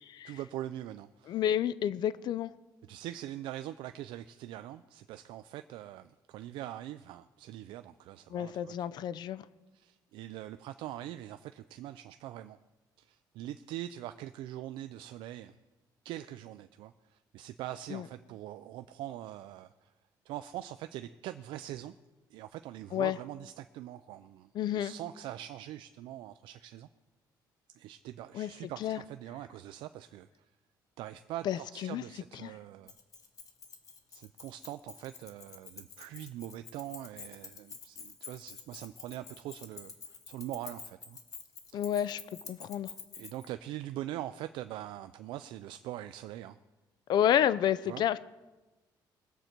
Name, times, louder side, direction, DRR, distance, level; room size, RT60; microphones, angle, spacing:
voice 1, 0.2-1.4 2.9-8.7 9.7-12.6 13.0-15.5 16.0-19.9 20.3-21.9 22.3-26.9 27.8-30.3 31.0-32.9 34.1-41.2 41.7-41.8 43.1-46.6 47.8-48.0, right 13 dB, 90° right, 10 dB, 0.4 m, -43 dB
voice 2, 1.3-2.5 8.3-9.4 17.9-18.0 22.9-23.2 24.5-24.9 28.3-28.5 28.8-29.0 31.4-32.0 32.4-32.5 41.7-42.2 42.5-42.9 47.1-48.2, left 10 dB, 65° left, 17 dB, 0.5 m, -30 dB
Keys jangling, 32.9-43.5, left 5 dB, 45° left, 1.5 m, -48 dB
21.5 x 8.0 x 4.5 m, 1.1 s
cardioid pair, 125°, 8 cm